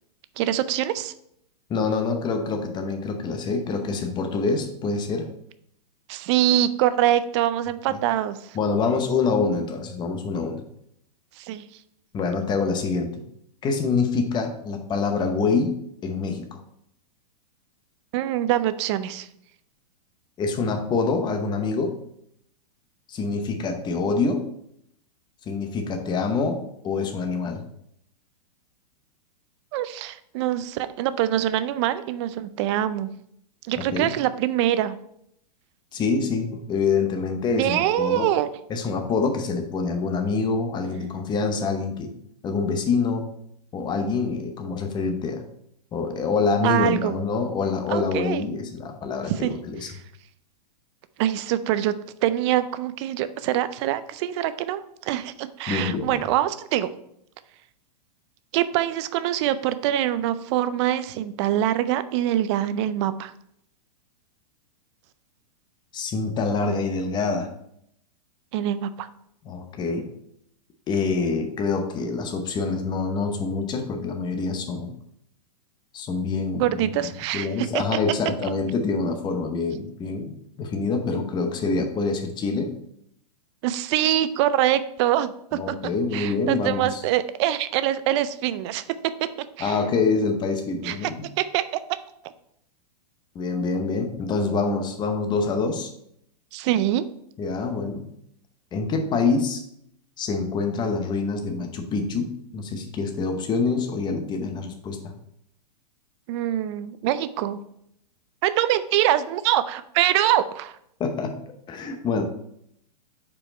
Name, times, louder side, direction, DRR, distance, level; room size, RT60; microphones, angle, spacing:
voice 1, 0.4-1.1 6.1-8.6 11.4-11.7 18.1-19.3 29.7-33.1 33.7-35.0 37.5-38.5 46.6-47.2 47.9-48.4 49.3-49.5 51.2-51.9 52.2-56.9 58.5-63.3 68.5-69.1 76.6-77.8 83.6-89.3 89.6-89.8 90.8-91.1 91.4-91.6 96.5-97.1 106.3-107.6 108.4-110.8, right 12 dB, 45° right, 13 dB, 0.4 m, -24 dB
voice 2, 1.7-5.3 7.9-8.0 8.5-10.6 12.1-13.2 13.6-15.8 16.0-16.5 20.4-22.0 23.1-24.5 25.5-27.6 33.8-34.1 35.9-38.3 38.7-42.1 42.4-43.3 43.7-45.4 45.9-49.9 55.7-56.2 65.9-67.5 69.4-70.1 70.9-74.9 75.9-76.9 77.3-82.7 85.5-87.0 89.6-91.3 93.3-95.9 97.4-98.1 98.7-99.6 100.2-105.1 111.0-111.3 111.7-112.2, left 4 dB, 20° left, 5 dB, 0.8 m, -26 dB
5.3 x 4.5 x 4.2 m, 0.73 s
hypercardioid pair, 135°, 21 cm